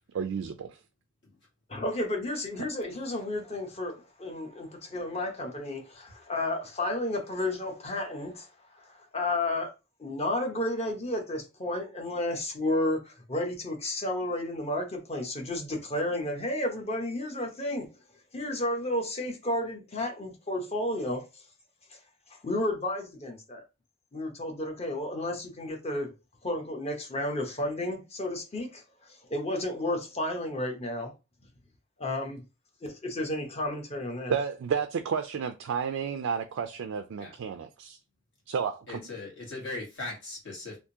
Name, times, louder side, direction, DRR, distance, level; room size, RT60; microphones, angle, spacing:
voice 1, 0.1-0.7 2.6-2.7 34.3-38.0 38.5-39.0, right 6 dB, 70° right, 0.3 m, -31 dB
voice 2, 1.7-8.5 8.7-9.7 10.0-17.9 18.3-21.4 21.9-22.0 22.3-23.6 24.1-26.1 26.4-28.8 29.1-31.1 32.0-32.4 32.8-34.3, left 1 dB, 30° left, 0.8 m, -32 dB
voice 3, 38.9-40.8, left 2 dB, 65° left, 1.8 m, -38 dB
3.5 x 2.5 x 2.7 m
head